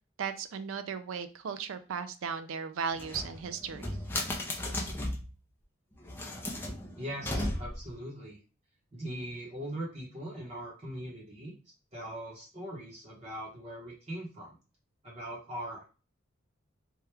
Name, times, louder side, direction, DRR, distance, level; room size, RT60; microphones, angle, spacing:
voice 1, 0.2-4.0, right 6 dB, 75° right, 10 dB, 0.4 m, -36 dB
sound 1, 2.9-5.3 6.0-7.9, left 1 dB, 10° left, 0.5 m, -35 dB
voice 2, 6.9-8.4 8.9-11.5 11.9-14.5 15.0-15.8, right 1 dB, 35° right, -5 dB, 0.9 m, -40 dB
3.0 x 2.3 x 3.3 m, 0.34 s
head